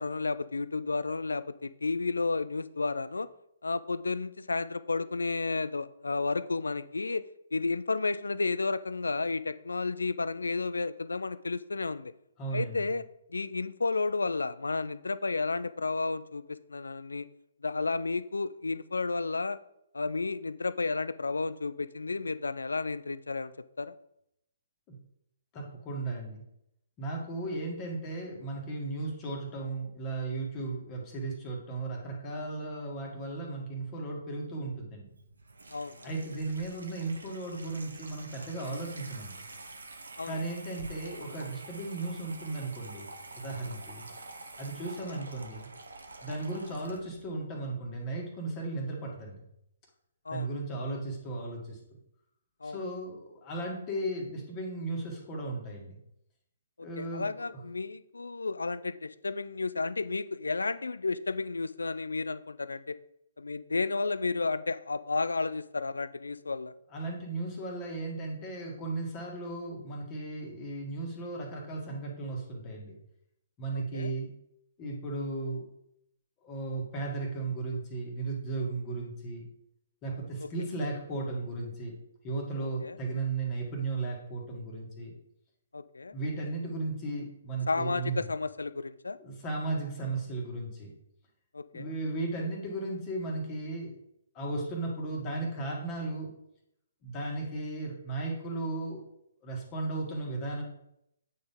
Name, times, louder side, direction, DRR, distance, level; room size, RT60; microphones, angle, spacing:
voice 1, 0.0-3.3 3.6-7.2 7.5-12.1 12.5-13.0 13.3-17.3 17.6-19.6 19.9-23.5 23.8-23.9 35.7-36.1 40.2-40.4 45.1-45.2 50.3-50.5 52.6-52.8 56.8-63.0 63.4-66.7 73.7-74.1 80.4-80.5 82.8-83.0 85.7-86.1 87.7-89.2 91.5-91.9, left 3 dB, 75° left, 15 dB, 0.3 m, -32 dB
voice 2, 12.4-12.9 24.9-25.0 25.5-26.4 27.0-35.1 36.0-39.4 40.2-43.1 43.3-44.1 44.6-45.7 46.2-49.4 50.3-51.8 52.6-56.0 56.8-57.6 66.9-72.9 73.6-74.3 74.8-75.6 76.4-79.5 80.0-82.0 82.2-85.1 86.1-88.2 89.2-90.9 91.7-94.0 94.4-96.3 97.0-99.0 99.4-100.6, right 2 dB, 25° left, -1 dB, 1.8 m, -35 dB
Water tap faucet / Sink (filling or washing), 35.1-47.3, right 3 dB, 75° right, 0.9 m, -47 dB
8.5 x 4.1 x 3.6 m, 0.77 s
figure-of-eight pair, 130°, 0 cm